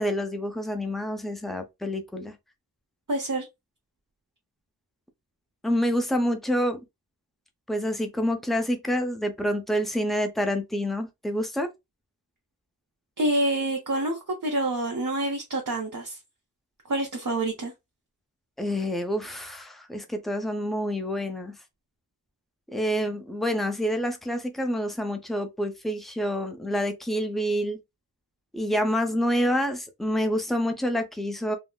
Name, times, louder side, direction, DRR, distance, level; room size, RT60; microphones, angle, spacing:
voice 1, 0.0-2.3 5.6-6.8 7.7-11.7 18.6-21.6 22.7-27.8 28.5-31.6, equal, ahead, 0.6 m, -27 dB
voice 2, 3.1-3.5 13.2-16.2 16.9-17.7, right 1 dB, 55° right, 0.7 m, -27 dB
3.6 x 2.0 x 2.2 m
wide cardioid pair, 45°, 38 cm